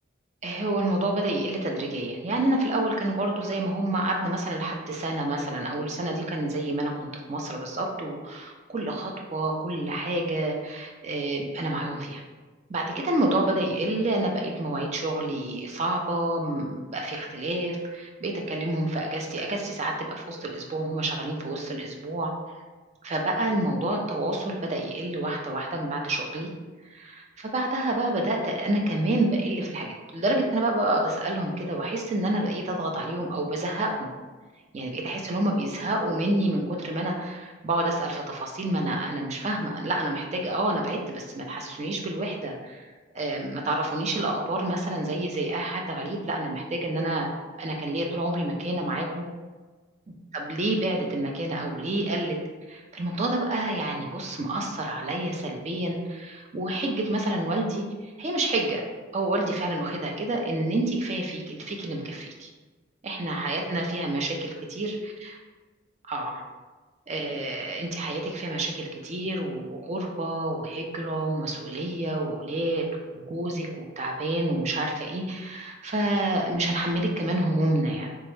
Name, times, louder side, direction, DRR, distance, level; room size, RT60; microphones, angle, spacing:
voice 1, 0.4-12.2 12.7-22.3 23.0-26.5 26.8-34.1 34.7-42.9 43.1-49.2 50.3-52.4 52.7-58.8 59.1-62.5 63.0-65.3 66.1-66.4 67.1-72.9 73.1-78.1, right 1 dB, 35° right, 1 dB, 0.4 m, -28 dB
3.5 x 2.0 x 3.1 m, 1.3 s
head